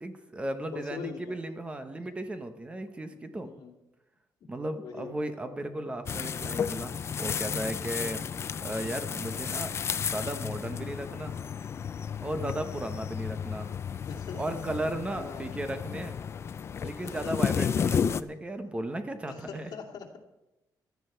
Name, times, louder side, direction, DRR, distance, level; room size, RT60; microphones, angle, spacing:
voice 1, 0.0-3.5 4.5-8.2 8.6-9.7 10.1-11.4 12.2-13.7 14.4-16.2 16.8-19.7, right 1 dB, 15° right, 8 dB, 0.9 m, -35 dB
voice 2, 0.7-1.4 3.4-3.7 4.8-5.1 7.9-8.2 12.3-12.6 14.1-14.6 15.2-15.4 17.0-17.5 19.4-20.2, left 6 dB, 65° left, 0 dB, 2.4 m, -42 dB
sound 1, 6.0-18.2, left 7 dB, 35° left, 0.4 m, -33 dB
16.0 x 12.0 x 4.5 m, 0.97 s
wide cardioid pair, 170°, 7 cm